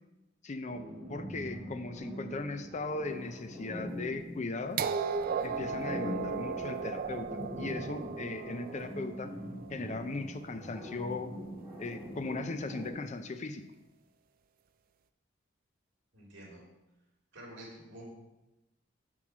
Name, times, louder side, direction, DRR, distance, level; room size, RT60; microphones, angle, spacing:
voice 1, 0.4-4.8 5.4-9.3 9.7-11.3 11.8-13.7, left 3 dB, 40° left, 9 dB, 0.5 m, -38 dB
sound 1, 0.7-12.9, equal, 5° right, 2.5 m, -43 dB
sound 2, 4.8-10.6 11.7-11.8, right 6 dB, 45° right, 0.3 m, -36 dB
voice 2, 16.1-16.6 17.3-18.0, right 1 dB, 65° right, -3 dB, 2.8 m, -48 dB
7.4 x 4.7 x 6.1 m, 0.98 s
head